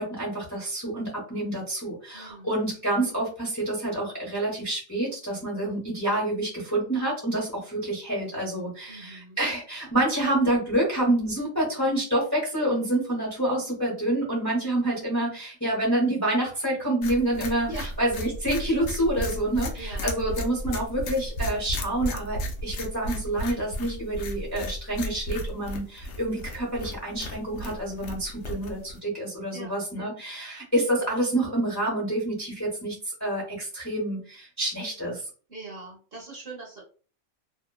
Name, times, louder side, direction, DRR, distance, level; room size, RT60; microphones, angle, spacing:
voice 1, 0.0-17.7 18.0-35.2, right 1 dB, 15° left, -4 dB, 0.7 m, -27 dB
voice 2, 2.1-2.5 8.9-9.4 17.7-17.9 19.7-20.4 29.5-30.2 35.5-36.8, right 2 dB, 50° right, -3 dB, 0.8 m, -42 dB
sound 1, 17.0-29.0, left 1 dB, 70° left, 0.9 m, -34 dB
2.8 x 2.1 x 2.2 m, 0.38 s
omnidirectional pair, 1.5 m